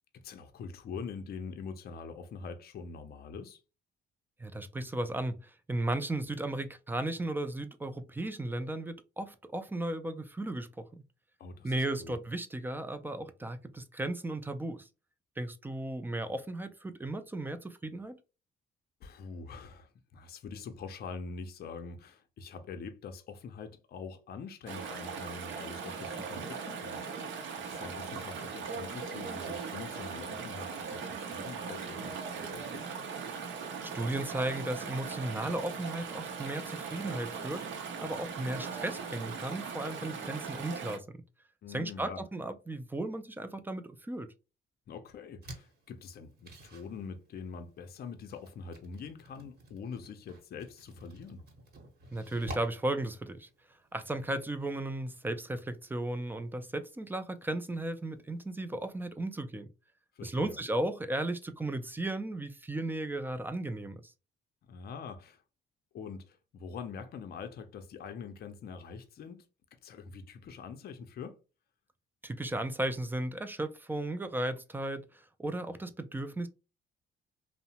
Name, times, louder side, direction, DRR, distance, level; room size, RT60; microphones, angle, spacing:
voice 1, 0.1-3.6 11.4-12.1 19.0-27.0 27.5-32.9 41.6-42.2 44.9-51.4 60.2-60.6 64.7-65.4 65.9-69.5 69.8-71.4, left 5 dB, 50° left, 0.5 m, -44 dB
voice 2, 4.4-11.0 11.6-14.9 15.4-18.2 33.9-41.0 41.7-44.3 52.1-53.5 53.9-59.7 60.2-64.0 72.2-76.5, right 1 dB, 10° right, 0.3 m, -35 dB
Chatter / Stream, 24.7-41.0, right 5 dB, 70° right, 0.6 m, -39 dB
sound 1, 45.4-59.0, right 1 dB, 55° right, 1.0 m, -53 dB
2.7 x 2.0 x 2.8 m
cardioid pair, 90°, 20 cm